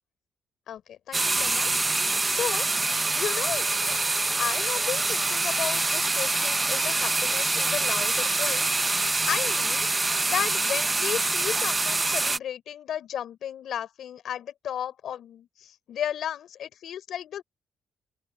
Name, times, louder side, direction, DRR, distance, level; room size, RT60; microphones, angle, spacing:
voice 1, 0.7-2.7 3.1-17.4, left 10 dB, 70° left, 4.8 m, -34 dB
sound 1, 1.1-12.4, right 3 dB, 20° right, 1.1 m, -25 dB
open air
cardioid pair, 90°, 0 cm